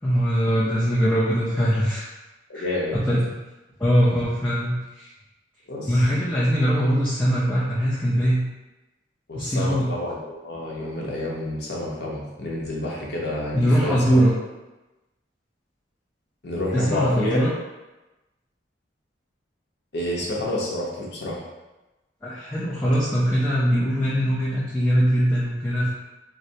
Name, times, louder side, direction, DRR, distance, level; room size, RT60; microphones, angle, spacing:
voice 1, 0.0-2.1 2.5-2.6 2.9-3.4 3.8-5.1 5.8-8.4 9.3-9.9 13.5-14.3 16.7-17.5 22.2-25.9, equal, 10° left, -9 dB, 0.5 m, -21 dB
voice 2, 2.5-3.0 5.7-6.0 9.3-14.2 16.4-17.4 19.9-21.4, left 1 dB, 60° left, -4 dB, 0.9 m, -29 dB
4.8 x 2.0 x 2.7 m, 1.1 s
head